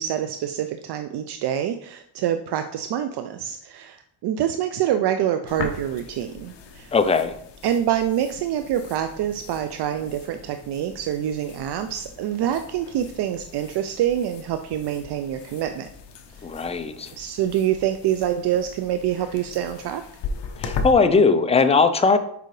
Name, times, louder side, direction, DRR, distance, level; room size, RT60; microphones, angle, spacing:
voice 1, 0.0-6.9 7.6-15.9 17.2-20.0, right 10 dB, 60° right, 7 dB, 0.5 m, -26 dB
sound 1, 5.5-20.9, left 4 dB, 65° left, 0.9 m, -38 dB
voice 2, 6.9-7.3 16.4-17.1 20.6-22.2, left 4 dB, 15° left, 9 dB, 0.3 m, -19 dB
6.8 x 4.9 x 3.2 m, 0.69 s
cardioid pair, 135°, 45 cm